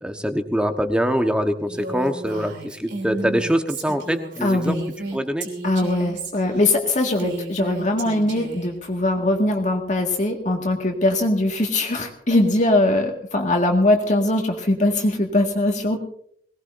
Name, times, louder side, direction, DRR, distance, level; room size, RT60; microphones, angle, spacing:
voice 1, 0.0-4.8 5.1-5.5, equal, 5° right, 6 dB, 1.2 m, -24 dB
Female speech woman speaking, 1.7-8.7, right 2 dB, 85° right, 3.3 m, -33 dB
voice 2, 4.4-4.9 5.6-16.0, left 1 dB, 45° left, 2 dB, 1.9 m, -21 dB
22.0 x 18.5 x 2.6 m, 0.64 s
head